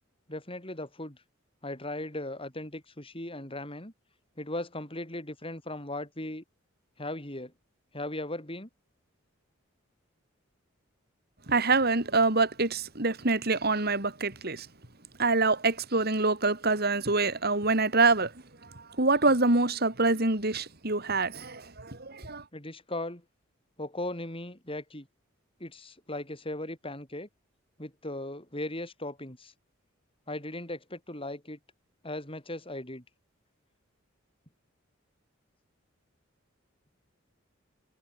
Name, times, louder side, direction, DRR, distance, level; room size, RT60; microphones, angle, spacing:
voice 1, 0.3-1.2 1.6-3.9 4.4-6.4 7.0-7.5 7.9-8.7 22.5-23.2 23.8-25.1 25.6-27.3 27.8-29.5 30.3-31.6 32.0-33.0, left 1 dB, 25° left, 7.2 m, -37 dB
voice 2, 11.5-14.7 15.2-18.3 19.0-22.4, right 3 dB, 50° right, 3.7 m, -25 dB
head